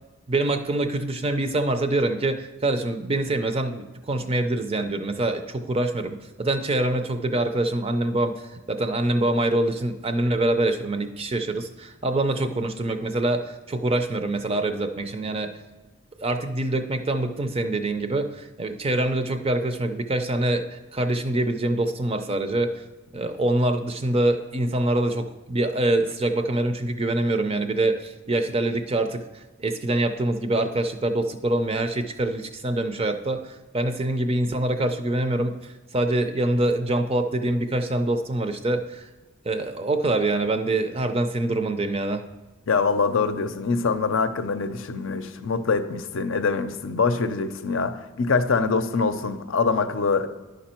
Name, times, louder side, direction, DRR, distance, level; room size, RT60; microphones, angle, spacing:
voice 1, 0.3-15.5 16.2-22.7 23.1-29.2 29.6-39.1 39.4-42.2, right 2 dB, 30° right, 7 dB, 0.5 m, -25 dB
voice 2, 42.7-50.3, left 4 dB, 65° left, 9 dB, 0.5 m, -24 dB
11.0 x 5.2 x 4.4 m, 1.2 s
head